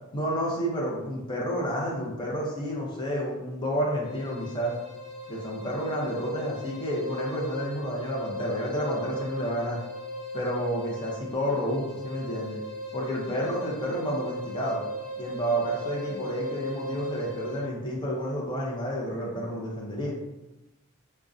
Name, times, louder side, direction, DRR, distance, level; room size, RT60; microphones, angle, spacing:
voice 1, 0.1-4.7 5.3-9.8 10.3-12.6 12.9-14.8 15.2-20.1, equal, 20° left, -4 dB, 0.5 m, -30 dB
sound 1, 4.0-17.7, equal, ahead, 0.8 m, -38 dB
2.5 x 2.1 x 2.4 m, 1.0 s
head